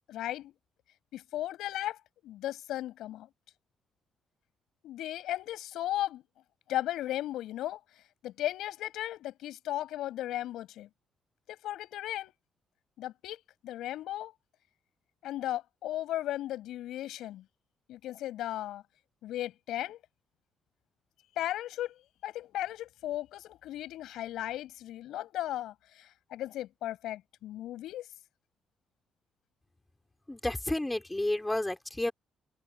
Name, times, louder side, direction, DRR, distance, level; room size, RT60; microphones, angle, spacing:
voice 1, 0.1-0.5 1.1-2.0 2.2-3.3 4.8-6.2 6.7-7.8 8.2-10.9 11.5-12.3 13.0-14.3 15.2-17.4 17.9-18.8 19.2-20.0 21.4-28.1, left 13 dB, 85° left, 7.6 m, -36 dB
voice 2, 30.3-32.1, left 1 dB, 10° left, 5.3 m, -31 dB
cardioid pair, 90°, 0 cm